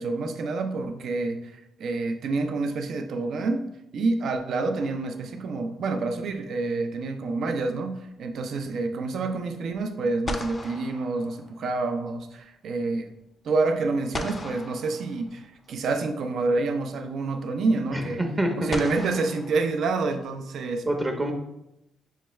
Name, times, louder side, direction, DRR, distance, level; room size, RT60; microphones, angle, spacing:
voice 1, 0.0-3.7 3.9-13.1 13.4-18.2 18.6-20.8, right 3 dB, 65° right, 6 dB, 0.4 m, -28 dB
sound 1, 4.8-5.6 9.7-9.8 10.2-12.0 14.1-15.7 17.1-17.2 18.7-20.3, left 2 dB, 30° left, 0.4 m, -38 dB
voice 2, 17.9-18.8 20.9-21.3, right 1 dB, 25° right, 3 dB, 0.6 m, -26 dB
5.5 x 2.3 x 3.1 m, 0.86 s
cardioid pair, 90°, 0 cm